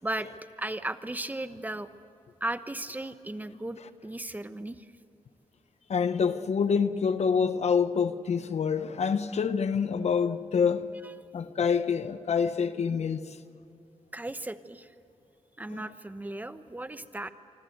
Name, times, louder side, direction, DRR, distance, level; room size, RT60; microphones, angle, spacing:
voice 1, 0.0-1.9 2.4-4.9 11.0-11.1 14.1-14.9 15.6-17.3, right 1 dB, 15° right, 1.0 m, -36 dB
voice 2, 5.9-11.0 11.3-13.2 15.7-15.8, left 6 dB, 70° left, 1.0 m, -26 dB
26.0 x 25.0 x 8.0 m
wide cardioid pair, 110°, 12 cm